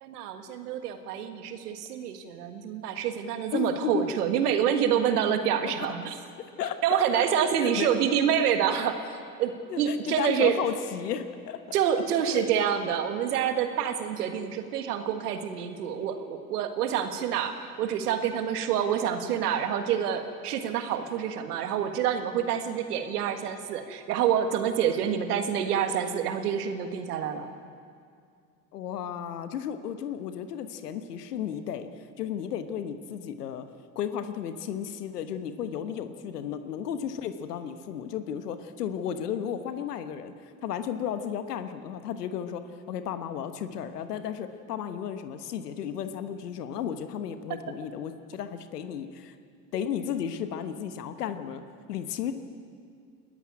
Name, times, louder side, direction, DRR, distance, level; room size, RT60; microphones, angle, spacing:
voice 1, 0.0-6.1 6.8-9.1 9.4-10.6 11.7-27.5, right 9 dB, 80° right, 7 dB, 1.8 m, -27 dB
voice 2, 3.5-4.1 5.6-5.9 6.6-7.3 7.6-7.9 9.7-11.6 11.9-12.5 28.7-31.9 32.2-33.7 33.9-42.6 42.9-49.3 49.7-51.6 51.9-52.3, left 8 dB, 85° left, 9 dB, 1.2 m, -34 dB
20.5 x 14.0 x 9.5 m, 2.3 s
hypercardioid pair, 70°, 46 cm